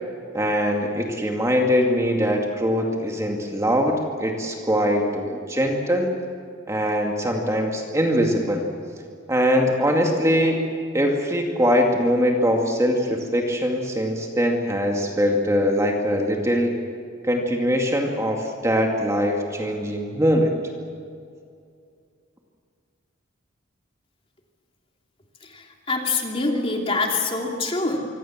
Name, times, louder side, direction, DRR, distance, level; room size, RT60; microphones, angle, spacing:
voice 1, 0.3-6.1 6.7-8.6 9.3-10.6 10.9-16.8 17.2-20.5, equal, 15° right, 1 dB, 2.3 m, -22 dB
voice 2, 25.4-28.0, left 3 dB, 25° left, 1 dB, 2.9 m, -25 dB
25.5 x 25.0 x 7.4 m, 2.3 s
head